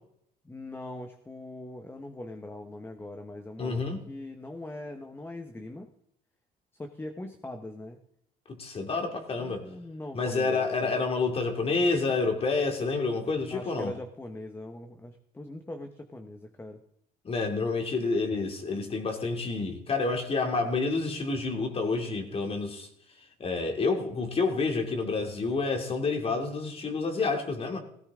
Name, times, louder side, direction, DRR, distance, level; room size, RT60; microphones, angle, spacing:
voice 1, 0.4-5.9 6.8-8.0 9.3-11.0 13.5-16.8, left 1 dB, 15° left, 1.2 m, -41 dB
voice 2, 3.6-4.0 8.5-9.6 10.1-13.9 17.2-22.9 23.4-27.8, left 3 dB, 35° left, 2.9 m, -29 dB
17.0 x 16.0 x 3.8 m
cardioid pair, 110°, 17 cm